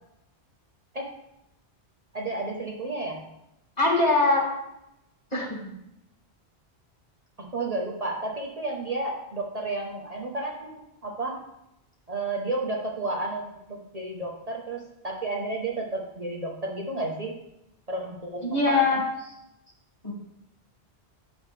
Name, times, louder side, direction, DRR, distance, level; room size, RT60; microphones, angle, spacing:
voice 1, 2.1-3.2 7.5-10.7 11.0-11.4 12.1-17.4 17.9-19.0, right 2 dB, 40° right, -1 dB, 1.0 m, -32 dB
voice 2, 3.8-4.4 5.3-5.5 18.4-19.0 20.0-20.1, left 3 dB, 40° left, -3 dB, 2.1 m, -22 dB
9.4 x 6.3 x 3.3 m, 0.84 s
omnidirectional pair, 1.1 m